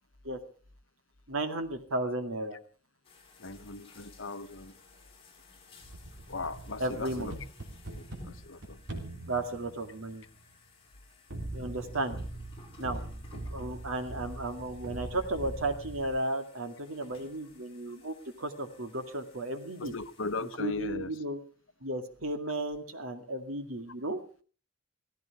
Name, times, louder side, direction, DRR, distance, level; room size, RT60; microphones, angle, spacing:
voice 1, 1.3-2.6 6.8-7.3 9.3-10.2 11.5-12.2 12.8-13.0 13.5-19.9 20.6-21.4 21.8-24.2, right 2 dB, 85° right, 2.3 m, -34 dB
sound 1, 3.0-20.6, left 4 dB, 25° left, 5.3 m, -58 dB
voice 2, 3.4-4.7 6.3-7.4 7.9-9.2 19.8-21.1, left 3 dB, 65° left, 1.1 m, -38 dB
sound 2, 5.8-10.5 11.3-16.1, right 1 dB, 60° right, 3.6 m, -42 dB
17.0 x 15.0 x 4.8 m
head